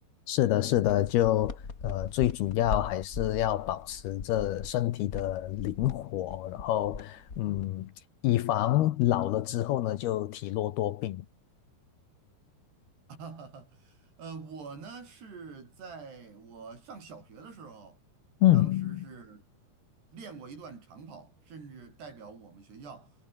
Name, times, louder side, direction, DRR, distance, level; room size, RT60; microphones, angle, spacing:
voice 1, 0.3-7.9 8.2-11.3 18.4-19.1, left 14 dB, 75° left, 2.8 m, -27 dB
sound 1, 0.8-7.9, left 4 dB, 25° left, 2.3 m, -41 dB
voice 2, 13.1-18.0 18.5-19.4 20.1-23.2, right 5 dB, 70° right, 8.7 m, -46 dB
omnidirectional pair, 4.9 m